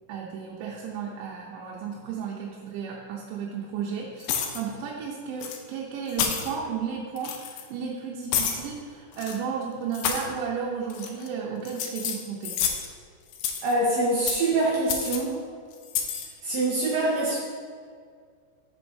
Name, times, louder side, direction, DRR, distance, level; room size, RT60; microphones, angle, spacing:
voice 1, 0.1-12.6, right 6 dB, 85° right, -2 dB, 3.0 m, -33 dB
sound 1, 4.2-4.6 5.4-5.6 6.1-6.5 7.2-7.6 8.3-8.6 9.1-9.4 9.9-10.3 10.9-11.3 11.7-12.9 13.3-13.7 14.3-14.5 14.9-15.2 15.8-16.3, left 8 dB, 85° left, 2.6 m, -29 dB
voice 2, 13.6-15.3 16.4-17.4, right 2 dB, 70° right, -5 dB, 2.3 m, -24 dB
10.5 x 7.7 x 2.7 m, 2.1 s
omnidirectional pair, 5.0 m